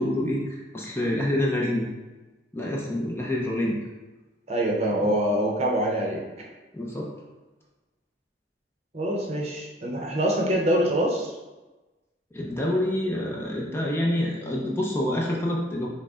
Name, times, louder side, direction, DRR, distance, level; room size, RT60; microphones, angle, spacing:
voice 1, 0.0-1.9 2.5-3.8 6.7-7.1 12.3-15.9, left 1 dB, 15° left, -3 dB, 0.6 m, -27 dB
voice 2, 4.5-6.2 8.9-11.3, right 1 dB, 35° right, -1 dB, 0.7 m, -24 dB
6.1 x 2.2 x 3.6 m, 1.1 s
head